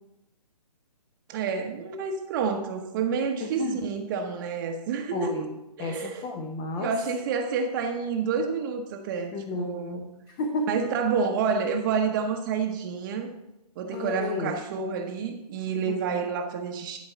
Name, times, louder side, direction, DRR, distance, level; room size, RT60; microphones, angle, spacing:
voice 1, 1.3-5.5 5.8-6.3 6.8-10.0 10.7-13.3 13.8-17.0, right 5 dB, 30° right, 4 dB, 0.9 m, -29 dB
voice 2, 3.4-3.8 5.1-6.9 9.3-10.8 13.9-14.5 15.9-16.3, left 3 dB, 20° left, 4 dB, 0.8 m, -33 dB
11.5 x 4.6 x 6.8 m, 0.91 s
hypercardioid pair, 145°, 20 cm